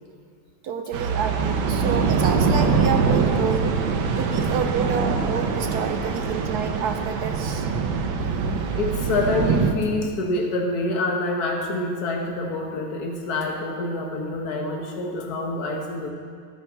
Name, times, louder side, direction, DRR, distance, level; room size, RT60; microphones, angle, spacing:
voice 1, 0.6-3.8 4.2-7.7, right 6 dB, 65° right, 6 dB, 1.1 m, -28 dB
sound 1, 0.9-9.7, right 5 dB, 80° right, 1.7 m, -23 dB
voice 2, 8.7-16.1, left 2 dB, 50° left, 1 dB, 1.9 m, -26 dB
16.5 x 10.5 x 4.7 m, 2.2 s
omnidirectional pair, 2.2 m